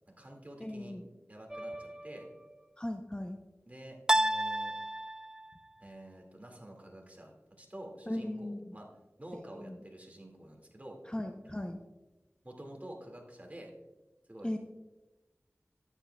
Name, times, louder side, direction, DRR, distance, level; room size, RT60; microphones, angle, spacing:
voice 1, 0.1-1.0 1.3-2.3 3.7-4.7 5.8-8.9 9.2-11.0 11.4-11.6 12.4-13.7 14.3-14.5, right 1 dB, 30° right, 1 dB, 2.0 m, -49 dB
voice 2, 0.6-1.1 2.8-3.4 8.1-8.8 9.3-9.8 11.1-11.8 14.4-14.6, left 1 dB, 20° left, 4 dB, 0.7 m, -38 dB
sound 1, 1.5-2.2 4.1-5.5, right 1 dB, 15° right, 0.3 m, -31 dB
13.0 x 9.8 x 2.2 m, 1.1 s
wide cardioid pair, 45°, 5 cm